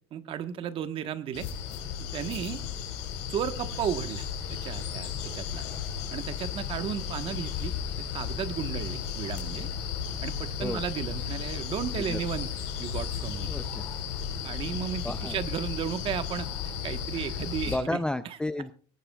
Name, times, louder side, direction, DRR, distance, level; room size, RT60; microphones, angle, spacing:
voice 1, 0.1-1.5 2.1-2.6 3.3-5.6 6.1-7.7 8.0-9.7 10.2-12.5 12.8-13.5 14.4-16.5 16.8-18.0, right 9 dB, 40° right, 9 dB, 1.3 m, -34 dB
sound 1, 1.3-17.8, left 8 dB, 80° left, 4.5 m, -34 dB
voice 2, 13.5-13.8 15.0-15.4 17.1-17.3 17.7-18.7, left 1 dB, 5° left, 11 dB, 0.5 m, -32 dB
18.0 x 16.0 x 2.4 m, 0.41 s
supercardioid pair, 120°, 14 cm